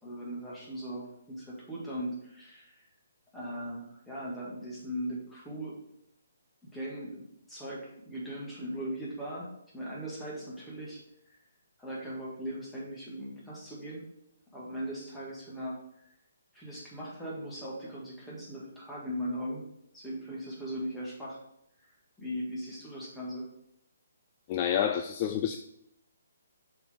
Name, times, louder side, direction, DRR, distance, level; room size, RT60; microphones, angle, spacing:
voice 1, 0.0-2.8 3.3-5.8 6.6-11.0 11.3-11.4 11.8-14.1 14.5-16.1 16.5-19.6 19.9-21.4 22.2-23.5, equal, 5° left, -7 dB, 2.1 m, -39 dB
voice 2, 24.5-25.6, left 9 dB, 30° left, 6 dB, 0.4 m, -28 dB
6.7 x 4.4 x 3.7 m, 0.77 s
figure-of-eight pair, 140°, 0 cm